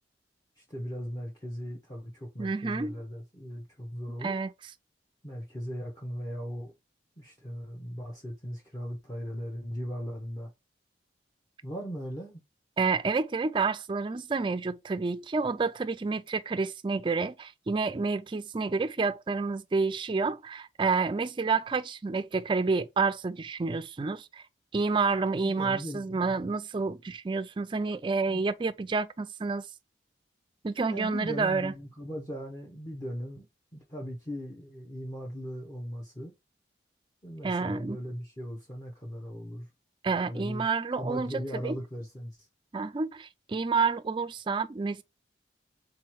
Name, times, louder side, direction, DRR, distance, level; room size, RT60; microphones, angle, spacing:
voice 1, 0.6-4.4 5.2-6.7 7.2-10.5 11.6-12.4 25.3-26.4 28.3-28.4 30.9-33.5 33.7-36.3 37.2-39.7 40.2-40.7 41.0-42.4, equal, 20° left, 0.8 m, -38 dB
voice 2, 2.4-2.9 4.2-4.5 12.8-24.4 24.7-29.7 30.6-31.7 37.4-38.0 40.0-41.8 42.7-45.0, right 4 dB, 25° right, 0.3 m, -29 dB
3.8 x 3.0 x 4.5 m
head